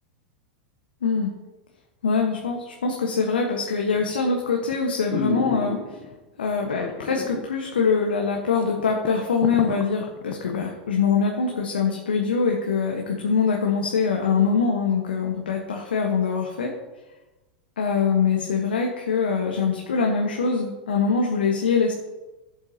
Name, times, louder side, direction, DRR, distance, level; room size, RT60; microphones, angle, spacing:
voice 1, 1.0-1.3 2.0-6.0 6.4-16.7 17.8-21.9, left 5 dB, 80° left, 1 dB, 1.3 m, -23 dB
sound 1, 3.9-4.3 4.7-4.8 5.1-6.1 6.8-7.5 7.8-7.9 8.4-8.5 8.7-10.6 11.0-11.1, left 5 dB, 40° left, 1.1 m, -31 dB
14.5 x 7.9 x 2.9 m, 1.1 s
hypercardioid pair, 100°, 5 cm